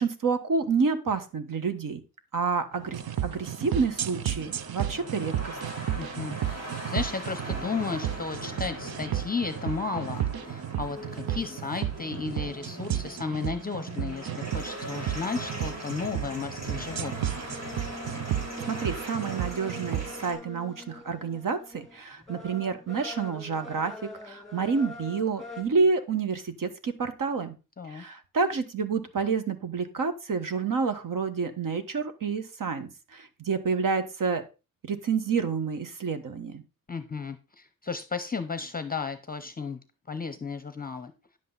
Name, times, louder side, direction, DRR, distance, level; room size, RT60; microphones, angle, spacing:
voice 1, 0.0-2.0 2.3-5.6 18.7-23.9 24.2-27.6 27.9-34.4 34.8-36.6, right 5 dB, 60° right, 9 dB, 1.3 m, -29 dB
sound 1, 2.7-20.3, right 1 dB, 45° right, 4.8 m, -41 dB
sound 2, 2.9-20.1, right 12 dB, 90° right, 0.6 m, -33 dB
voice 2, 6.0-6.4 6.9-17.3 27.8-28.0 36.9-39.8 40.1-41.1, left 4 dB, 25° left, 10 dB, 0.7 m, -34 dB
sound 3, 11.0-25.6, left 2 dB, ahead, 2.5 m, -45 dB
10.5 x 7.8 x 3.9 m, 0.29 s
wide cardioid pair, 165°, 36 cm